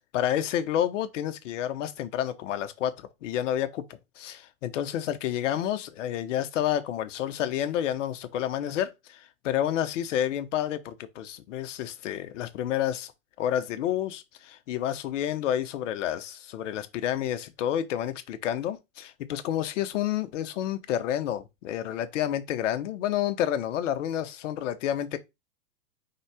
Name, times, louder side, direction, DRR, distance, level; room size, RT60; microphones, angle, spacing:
voice 1, 0.1-13.1 13.4-25.2, left 11 dB, 55° left, 0.9 m, -29 dB
4.2 x 3.8 x 3.3 m
hypercardioid pair, 140°, 45 cm